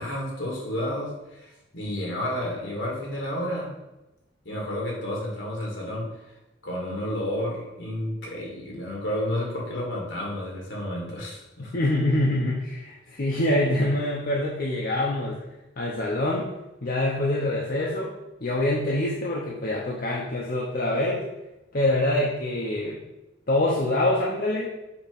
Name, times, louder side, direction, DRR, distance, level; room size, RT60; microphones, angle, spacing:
voice 1, 0.0-3.7 4.5-6.1 6.6-11.7, left 1 dB, 70° left, -2 dB, 2.1 m, -31 dB
voice 2, 11.6-15.4 15.8-16.5 16.8-18.1 18.4-21.2 21.7-23.0 23.5-24.7, left 1 dB, 50° left, -3 dB, 0.8 m, -25 dB
6.9 x 3.0 x 5.3 m, 0.98 s
head